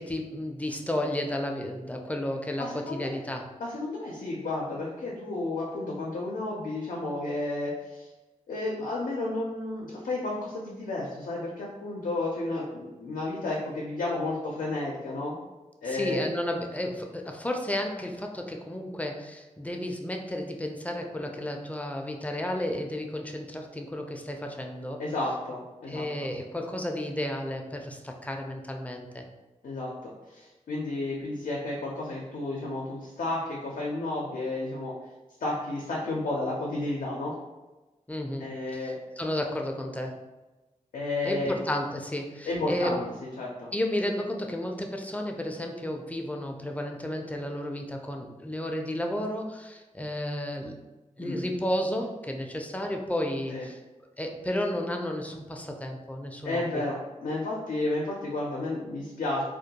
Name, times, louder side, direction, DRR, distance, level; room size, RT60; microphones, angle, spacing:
voice 1, 0.0-3.5 15.8-25.0 25.9-29.2 38.1-40.2 41.2-42.9 43.7-50.8 51.2-53.8 54.2-56.8, left 1 dB, 10° left, 2 dB, 0.4 m, -32 dB
voice 2, 2.6-3.0 3.6-8.1 8.5-15.4 15.8-16.3 25.0-26.3 29.6-34.9 35.4-37.3 38.4-38.9 40.9-41.5 42.4-43.0 43.4-43.7 51.2-51.4 53.5-53.7 56.4-59.4, left 2 dB, 85° left, -3 dB, 0.4 m, -32 dB
2.2 x 2.2 x 2.8 m, 1.1 s
cardioid pair, 50°, 13 cm